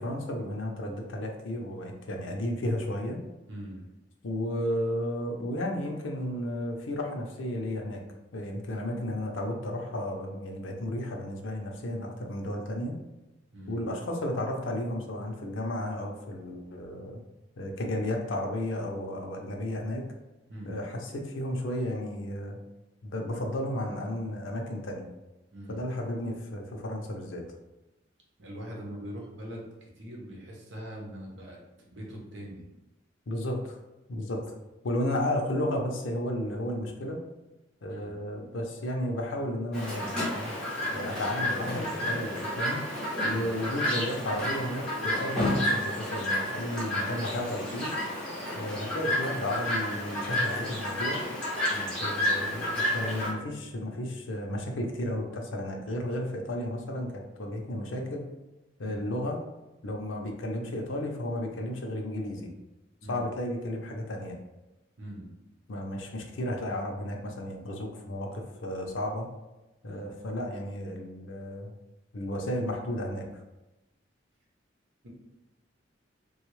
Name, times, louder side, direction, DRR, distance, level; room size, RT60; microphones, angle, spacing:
voice 1, 0.0-3.2 4.2-8.0 8.3-13.0 13.7-17.2 17.6-20.0 20.6-22.6 23.0-25.1 25.7-27.4 33.3-33.8 34.1-34.5 34.8-37.2 37.8-40.5 40.9-42.8 43.2-47.9 48.5-51.2 52.0-58.3 58.8-59.4 59.8-62.5 63.1-64.4 65.7-69.3 69.8-71.7 72.1-73.2, left 1 dB, 90° left, 2 dB, 0.6 m, -33 dB
voice 2, 3.5-3.9 13.5-13.8 20.5-20.8 25.5-25.8 28.4-32.6 37.9-38.2 43.2-43.5 51.7-52.0 58.8-59.1 63.0-63.2 65.0-65.4 69.8-70.1 75.0-75.1, equal, 70° right, -2 dB, 0.9 m, -42 dB
Chirp tweet, 39.7-53.3, left 1 dB, 5° left, 1.2 m, -30 dB
3.4 x 2.3 x 3.1 m, 1.0 s
head